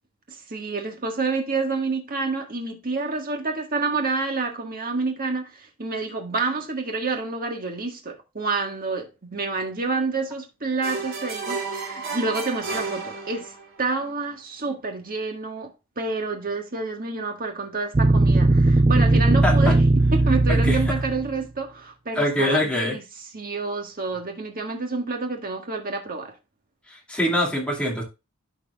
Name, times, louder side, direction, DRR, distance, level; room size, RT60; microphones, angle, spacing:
voice 1, 0.3-13.5 13.8-19.8 20.1-26.3, right 3 dB, 40° right, 1.5 m, -28 dB
sound 1, 10.8-13.8, right 4 dB, 60° right, 3.3 m, -32 dB
sound 2, 17.9-21.4, right 2 dB, 20° right, 0.3 m, -18 dB
voice 2, 19.4-19.7 20.5-20.8 22.1-23.0 26.9-28.0, left 1 dB, 5° left, 2.3 m, -24 dB
13.0 x 4.6 x 2.3 m
head